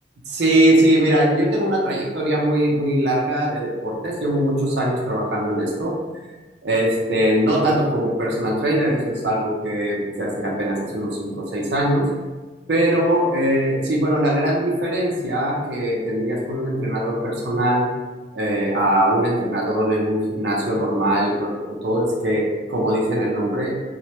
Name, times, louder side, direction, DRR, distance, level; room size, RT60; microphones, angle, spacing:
voice 1, 0.3-5.9 6.6-12.1 12.7-17.9 18.3-23.8, right 1 dB, 65° right, -2 dB, 0.5 m, -21 dB
2.1 x 2.0 x 2.8 m, 1.3 s
head